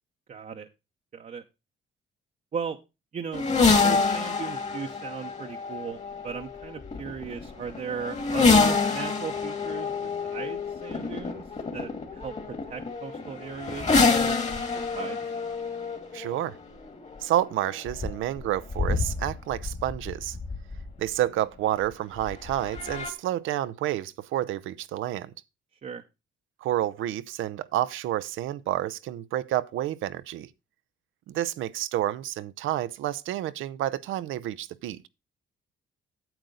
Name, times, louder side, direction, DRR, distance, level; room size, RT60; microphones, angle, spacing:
voice 1, 0.3-0.7 1.1-1.4 2.5-2.8 3.1-3.5 3.8-6.0 6.2-11.4 11.7-15.2 25.8-26.0, right 6 dB, 40° right, 0.8 m, -37 dB
sound 1, 3.3-21.1 22.2-23.1, left 4 dB, 35° left, 2.0 m, -27 dB
voice 2, 16.1-16.6 17.2-20.4 21.0-25.3 26.6-30.5 31.3-35.1, right 13 dB, 85° right, 0.6 m, -29 dB
9.0 x 7.9 x 3.8 m
cardioid pair, 90°, 20 cm